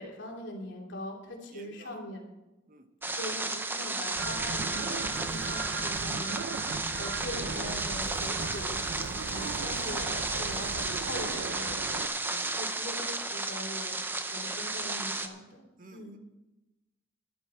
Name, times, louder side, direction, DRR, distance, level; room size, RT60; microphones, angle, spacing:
voice 1, 0.0-2.3 3.1-8.8 9.3-15.6 15.9-16.2, left 1 dB, 85° left, -1 dB, 2.9 m, -42 dB
voice 2, 1.5-2.0 2.7-2.9 9.1-9.7 10.7-10.8 11.2-11.4 12.3-12.8 15.8-16.2, right 1 dB, 45° right, 8 dB, 1.0 m, -53 dB
sound 1, 3.0-15.3, right 2 dB, 10° right, 0.6 m, -33 dB
sound 2, 4.2-12.1, right 5 dB, 80° right, 0.5 m, -37 dB
13.0 x 11.0 x 4.5 m, 1.0 s
head